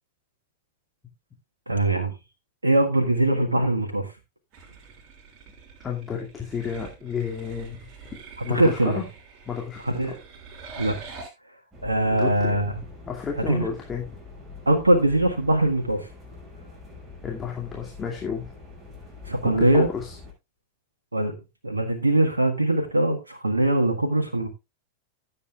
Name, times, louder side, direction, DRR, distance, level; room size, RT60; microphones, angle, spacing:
voice 1, 1.7-2.1 2.6-4.1 8.4-9.0 9.9-10.1 10.8-11.0 11.8-12.7 13.5-13.7 14.6-16.0 19.3-19.9 21.1-21.3 21.6-24.5, right 1 dB, 80° right, 5 dB, 1.6 m, -22 dB
sound 1, 4.5-11.3, right 4 dB, 35° right, 6.0 m, -45 dB
voice 2, 5.8-7.8 8.4-9.1 9.5-10.2 12.1-12.6 13.1-14.2 17.2-18.4 19.4-20.2, left 6 dB, 20° left, -1 dB, 2.4 m, -31 dB
sound 2, 11.7-20.3, left 4 dB, 15° right, 6.0 m, -44 dB
16.0 x 8.5 x 2.4 m, 0.25 s
figure-of-eight pair, 90°, 0 cm